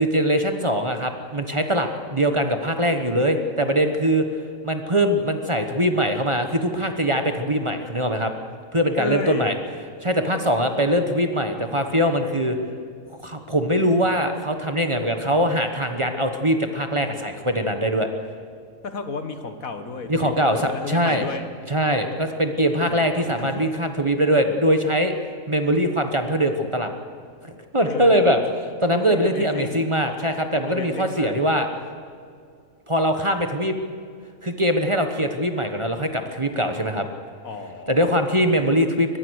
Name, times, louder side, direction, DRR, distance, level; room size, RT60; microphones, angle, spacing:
voice 1, 0.0-4.2 4.6-8.3 8.7-9.5 10.0-12.6 13.2-18.1 20.1-21.3 21.7-25.1 25.5-26.9 27.4-28.4 28.8-31.7 32.9-33.8 34.4-37.1 37.9-39.2, equal, 25° right, 6 dB, 1.2 m, -22 dB
voice 2, 9.0-9.5 18.8-21.5 22.8-23.6 27.9-28.5 29.1-29.8 30.7-31.3 37.4-38.1, left 4 dB, 80° left, 7 dB, 2.0 m, -33 dB
23.0 x 20.5 x 6.5 m, 2.2 s
omnidirectional pair, 1.4 m